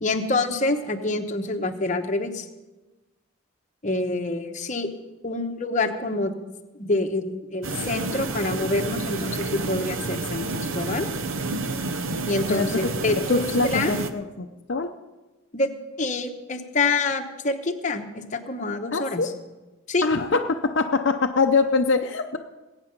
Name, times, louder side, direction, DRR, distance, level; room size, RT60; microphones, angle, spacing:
voice 1, 0.0-2.4 3.8-4.9 5.2-6.3 6.8-11.1 12.3-13.9 15.5-15.7 16.0-19.2 19.9-20.1, left 2 dB, 35° left, 4 dB, 1.0 m, -26 dB
voice 2, 4.0-4.3 12.5-12.8 13.3-14.9 18.9-19.3 20.0-22.4, left 3 dB, 55° left, 4 dB, 0.6 m, -24 dB
sound 1, 7.6-14.1, right 3 dB, 70° right, 0.8 m, -29 dB
20.5 x 8.9 x 5.3 m, 1.1 s
head